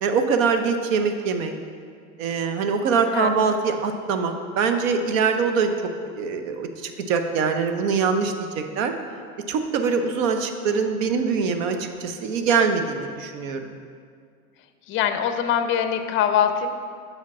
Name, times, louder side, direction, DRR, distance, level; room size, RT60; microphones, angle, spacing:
voice 1, 0.0-1.5 2.2-5.7 6.2-8.9 9.5-13.8, right 5 dB, 70° right, 6 dB, 0.8 m, -23 dB
voice 2, 14.9-16.7, left 9 dB, 30° left, 9 dB, 0.5 m, -22 dB
6.4 x 5.1 x 4.1 m, 2.1 s
hypercardioid pair, 100°, 41 cm